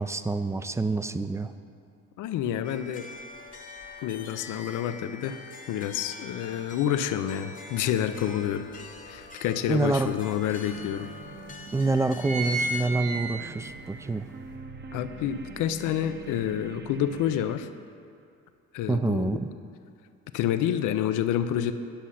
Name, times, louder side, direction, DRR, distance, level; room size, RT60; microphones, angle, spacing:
voice 1, 0.0-1.5 9.7-10.1 11.7-14.2 18.9-19.5, right 3 dB, 10° right, 11 dB, 0.4 m, -27 dB
voice 2, 2.2-3.1 4.0-5.4 5.7-8.7 9.1-11.1 14.9-17.7 18.7-19.3 20.3-21.7, left 10 dB, 90° left, 10 dB, 0.5 m, -28 dB
sound 1, 2.6-12.9, left 4 dB, 25° left, 0.9 m, -45 dB
sound 2, 8.0-8.1 8.6-9.7 10.4-10.5 10.7-10.8 11.5-11.7 12.0-13.8 14.2-14.3, right 2 dB, 85° right, 2.1 m, -32 dB
sound 3, 10.7-17.6, right 4 dB, 35° right, 0.8 m, -44 dB
10.5 x 6.3 x 5.7 m, 2.4 s
cardioid pair, 90°, 30 cm